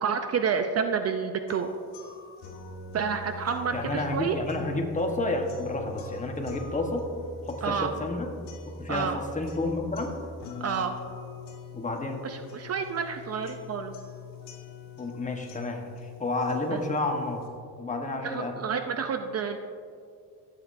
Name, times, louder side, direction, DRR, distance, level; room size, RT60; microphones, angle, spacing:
voice 1, 0.0-1.7 2.9-4.4 7.6-7.9 8.9-9.2 10.6-10.9 12.2-13.9 16.7-16.8 18.2-19.6, right 6 dB, 40° right, 7 dB, 0.6 m, -29 dB
sound 1, 1.5-17.5, left 2 dB, 85° left, 1.7 m, -43 dB
voice 2, 3.7-7.1 7.4-8.3 8.7-10.1 11.7-12.2 15.0-17.4 17.8-18.5, left 2 dB, 20° left, 3 dB, 1.1 m, -30 dB
14.5 x 8.4 x 2.6 m, 2.3 s
cardioid pair, 110°, 38 cm